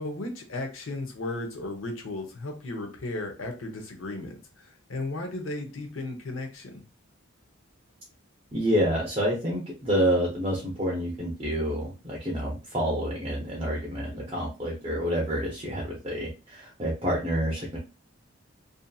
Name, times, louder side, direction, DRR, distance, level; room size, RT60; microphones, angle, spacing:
voice 1, 0.0-6.8, left 2 dB, 75° left, 4 dB, 0.7 m, -35 dB
voice 2, 8.5-17.8, equal, 25° right, -3 dB, 0.6 m, -28 dB
2.6 x 2.5 x 2.3 m, 0.31 s
head